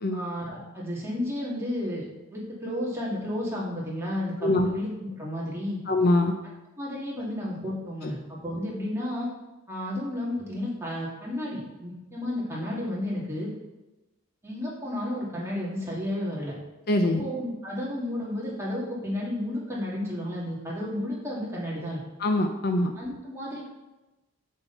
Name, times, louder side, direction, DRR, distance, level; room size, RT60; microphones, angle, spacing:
voice 1, 0.1-2.0 2.3-4.9 5.2-5.8 6.8-9.3 9.7-13.5 14.4-16.5 17.2-22.0 23.0-23.7, left 1 dB, 15° right, -6 dB, 2.5 m, -32 dB
voice 2, 5.9-6.4 8.0-8.1 16.9-17.2 22.2-22.9, left 1 dB, 50° left, 5 dB, 0.6 m, -23 dB
7.7 x 6.9 x 4.1 m, 1.1 s
head